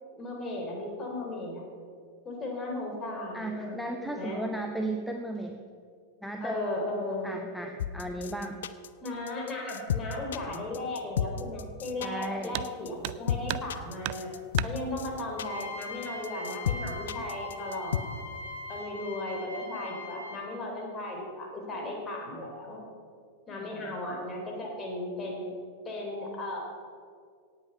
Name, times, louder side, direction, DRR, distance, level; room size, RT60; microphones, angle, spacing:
voice 1, 0.1-1.6 2.2-3.8 4.1-4.4 6.4-7.3 9.0-14.3 14.6-18.2 18.7-22.8 23.5-25.4 25.9-26.6, left 2 dB, 25° left, 0 dB, 3.9 m, -36 dB
voice 2, 3.3-5.6 6.2-6.6 7.2-8.6 12.0-12.5 23.6-23.7, right 1 dB, ahead, 4 dB, 0.8 m, -35 dB
sound 1, 7.8-18.0, left 9 dB, 60° left, 0.6 m, -32 dB
sound 2, 12.5-12.8 13.0-13.8 14.0-14.8 15.9-16.0 16.5-16.6 17.4-17.7 18.1-18.5, right 17 dB, 45° right, 0.4 m, -35 dB
sound 3, 15.3-20.6, left 2 dB, 85° left, 3.1 m, -41 dB
18.0 x 8.3 x 5.7 m, 2.2 s
figure-of-eight pair, 90°, 0 cm